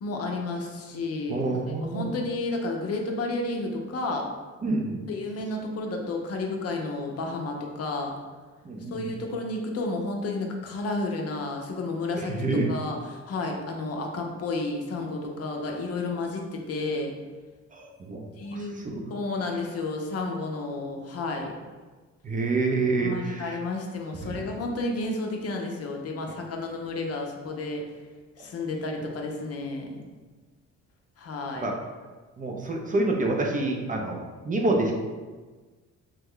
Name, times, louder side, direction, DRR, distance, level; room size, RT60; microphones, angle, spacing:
voice 1, 0.0-4.3 5.1-8.2 8.9-17.1 18.4-18.8 19.1-21.5 23.0-27.8 28.4-30.0 31.2-31.7, left 2 dB, 55° left, 1 dB, 0.6 m, -31 dB
voice 2, 1.3-2.1 4.6-5.0 8.6-9.1 12.2-12.7 17.7-18.3 18.5-19.0 22.2-23.6 24.2-24.5 31.6-31.7 32.4-34.9, right 2 dB, 25° right, 1 dB, 0.4 m, -27 dB
3.1 x 2.2 x 3.6 m, 1.3 s
cardioid pair, 90°, 30 cm